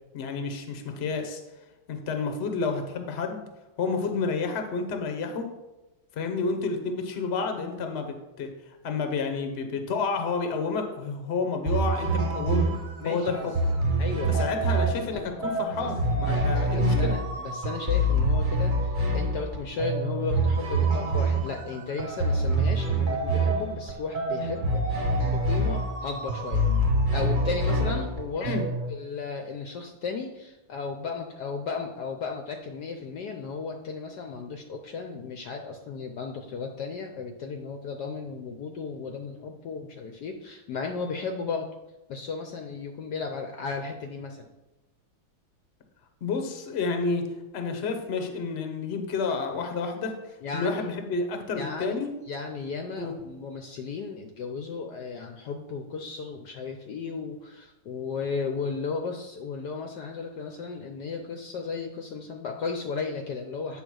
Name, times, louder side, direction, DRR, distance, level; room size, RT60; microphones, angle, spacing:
voice 1, 0.1-1.4 1.9-3.4 3.8-5.5 6.2-8.5 8.8-12.7 13.0-13.5 14.3-17.2 28.4-28.6 46.2-47.2 47.5-50.1 50.5-52.1 53.0-53.1, left 4 dB, 45° left, 5 dB, 0.8 m, -30 dB
sound 1, 11.6-28.9, right 1 dB, 35° right, 0.8 m, -26 dB
voice 2, 13.0-13.5 14.0-14.7 15.1-15.3 15.8-15.9 16.3-26.6 27.1-28.5 28.9-41.7 42.1-44.4 50.4-50.9 51.5-52.0 52.3-63.8, left 4 dB, 70° left, 4 dB, 1.1 m, -35 dB
8.9 x 3.8 x 6.2 m, 1.0 s
omnidirectional pair, 2.2 m